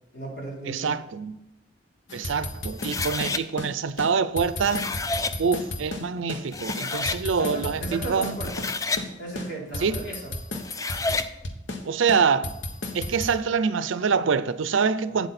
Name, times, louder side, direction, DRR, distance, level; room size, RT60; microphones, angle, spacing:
voice 1, 0.1-1.0 7.3-8.7 9.2-10.3 15.1-15.3, right 2 dB, 60° left, 3.7 m, -36 dB
voice 2, 0.7-1.4 2.1-4.9 5.4-8.4 9.8-10.0 11.9-12.6 12.9-15.3, right 5 dB, 90° right, 0.5 m, -25 dB
sound 1, 2.1-3.7 4.0-4.1 4.4-6.4 6.7-8.7 9.0-9.1 9.4-11.8 12.1-13.3, left 2 dB, 75° left, 1.2 m, -33 dB
sound 2, 2.8-3.4 4.4-5.4 6.2-6.3 6.5-7.2 8.3-9.1 10.5-11.3, left 3 dB, 15° left, 0.4 m, -29 dB
8.4 x 8.0 x 4.2 m
head